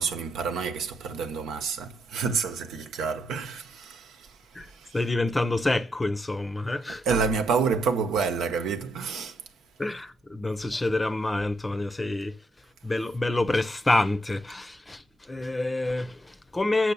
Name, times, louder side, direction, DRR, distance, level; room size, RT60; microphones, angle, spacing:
voice 1, 0.0-4.9 7.1-9.4, right 5 dB, 80° right, 1.0 m, -28 dB
voice 2, 4.5-7.1 9.8-12.5 12.8-16.9, left 2 dB, 15° left, 0.6 m, -27 dB
6.6 x 5.9 x 6.9 m
cardioid pair, 90°, 0 cm